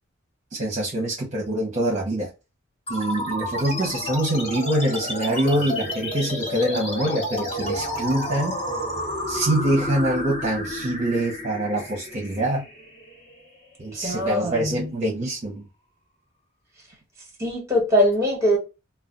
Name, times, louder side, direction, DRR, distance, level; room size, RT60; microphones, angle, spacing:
voice 1, 0.5-2.3 2.9-8.6 9.3-12.6 13.8-15.6, right 1 dB, 35° right, 0.8 m, -25 dB
sound 1, 2.9-13.8, left 1 dB, 30° left, 1.2 m, -30 dB
voice 2, 14.0-14.9 17.4-18.6, equal, 15° right, 1.2 m, -22 dB
2.3 x 2.2 x 3.7 m
head